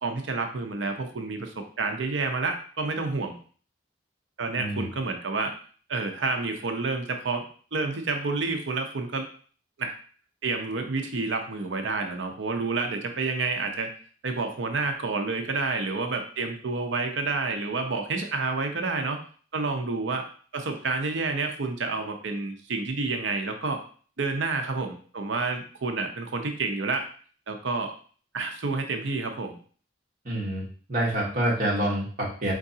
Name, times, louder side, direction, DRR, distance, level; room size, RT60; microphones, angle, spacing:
voice 1, 0.0-3.3 4.4-5.5 5.9-7.4 7.7-9.3 9.8-10.0 10.4-13.9 14.2-19.2 19.5-20.3 20.5-23.8 24.2-27.1 27.5-27.9 28.3-29.6, right 3 dB, 70° right, 5 dB, 0.7 m, -29 dB
voice 2, 30.2-32.5, right 1 dB, 45° right, -3 dB, 1.4 m, -27 dB
4.6 x 3.6 x 2.8 m, 0.43 s
head